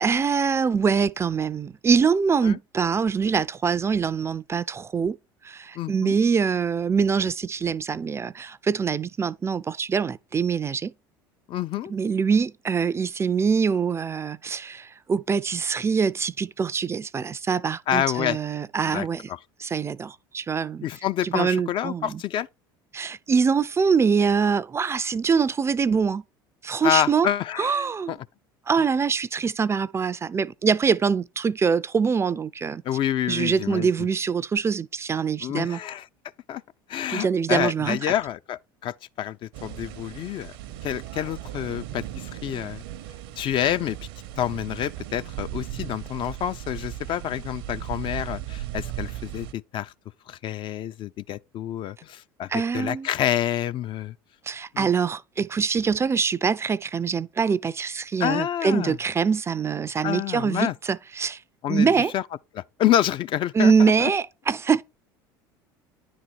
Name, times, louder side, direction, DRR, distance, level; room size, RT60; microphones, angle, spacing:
voice 1, 0.0-5.2 5.4-10.9 11.9-19.3 19.6-20.9 21.2-22.2 22.9-26.2 26.6-27.3 27.6-28.2 28.7-32.8 33.3-35.8 37.1-38.1 52.5-53.1 54.5-61.4 61.7-62.1 63.5-64.8, right 6 dB, 25° right, 0.3 m, -24 dB
voice 2, 5.8-6.2 11.5-11.9 17.9-18.4 18.9-19.4 20.8-22.5 26.8-28.2 32.8-33.9 35.4-36.1 36.5-36.6 36.9-40.5 40.8-42.8 43.4-44.0 44.4-49.9 50.3-54.1 54.7-55.0 58.2-59.0 60.0-60.7 61.6-62.2 62.5-64.1, left 11 dB, 45° left, 0.4 m, -28 dB
sound 1, 39.5-49.5, right 13 dB, 75° right, 0.7 m, -37 dB
9.7 x 4.1 x 4.4 m
hypercardioid pair, 80°, 12 cm